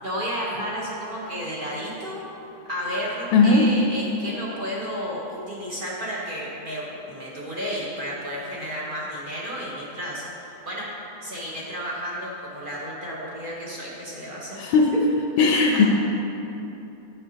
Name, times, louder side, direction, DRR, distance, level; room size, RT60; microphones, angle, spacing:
voice 1, 0.0-2.2 2.7-10.2 10.6-10.9 11.2-14.6 14.9-15.0 15.4-15.8, equal, 40° right, -5 dB, 0.8 m, -32 dB
voice 2, 3.3-3.6 14.6-15.0 15.4-15.8, left 4 dB, 80° left, 1 dB, 1.3 m, -17 dB
9.0 x 6.6 x 2.8 m, 2.9 s
omnidirectional pair, 2.1 m